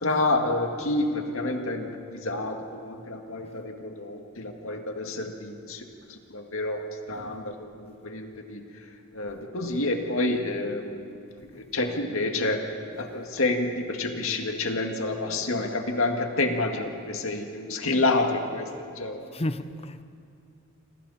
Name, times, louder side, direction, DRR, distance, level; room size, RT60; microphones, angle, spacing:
voice 1, 0.0-5.8 6.1-8.7 9.1-11.2 11.5-12.6 12.9-18.7 19.0-19.2, left 2 dB, 75° left, 3 dB, 2.1 m, -28 dB
voice 2, 19.3-20.0, left 1 dB, 30° left, 11 dB, 0.7 m, -33 dB
27.5 x 27.0 x 4.3 m, 2.4 s
head